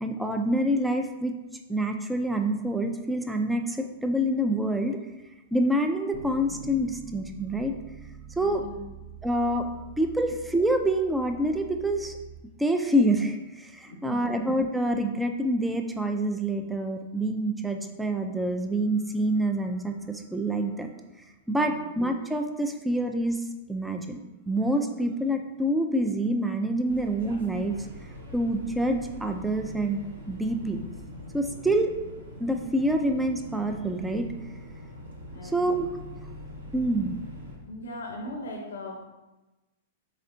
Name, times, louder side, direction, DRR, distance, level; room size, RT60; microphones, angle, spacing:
voice 1, 0.0-1.4 1.7-5.0 5.5-7.7 8.4-8.6 9.2-9.7 10.0-12.2 12.6-20.9 21.5-24.2 24.5-27.9 28.3-30.8 31.3-31.9 32.4-34.3 35.5-35.9 36.7-37.2, right 1 dB, 5° right, 4 dB, 0.3 m, -27 dB
sound 1, 6.1-12.4, right 4 dB, 55° right, 0.8 m, -45 dB
voice 2, 8.4-8.9 13.9-14.4 21.6-21.9 31.5-31.6 35.3-35.8 37.6-39.0, left 1 dB, 80° left, 2 dB, 0.5 m, -39 dB
sound 2, 26.9-37.6, left 1 dB, 80° right, 1.0 m, -43 dB
4.2 x 4.1 x 2.6 m, 1.1 s
hypercardioid pair, 110°, 0 cm